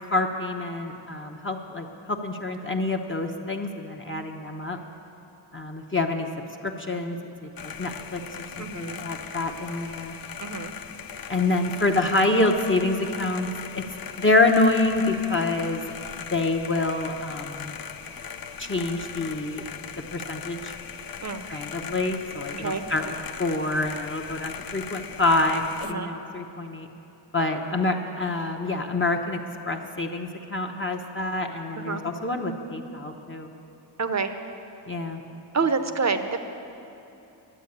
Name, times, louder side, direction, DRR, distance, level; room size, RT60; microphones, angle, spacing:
voice 1, 0.1-4.8 5.5-6.3 6.6-7.2 7.6-10.1 11.3-13.8 14.2-15.8 16.3-17.7 18.6-19.7 20.1-20.8 21.5-26.9 27.3-29.4 29.6-33.5 34.9-35.2, left 2 dB, 25° left, 2 dB, 0.9 m, -26 dB
sound 1, 7.6-25.9, left 7 dB, 50° left, 0.6 m, -39 dB
voice 2, 8.6-9.1 10.4-10.8 21.2-21.4 22.5-22.8 25.8-26.1 31.8-32.0 34.0-34.3 35.5-36.4, right 4 dB, 35° right, 9 dB, 0.8 m, -27 dB
11.0 x 7.6 x 9.7 m, 2.9 s
cardioid pair, 75°, 46 cm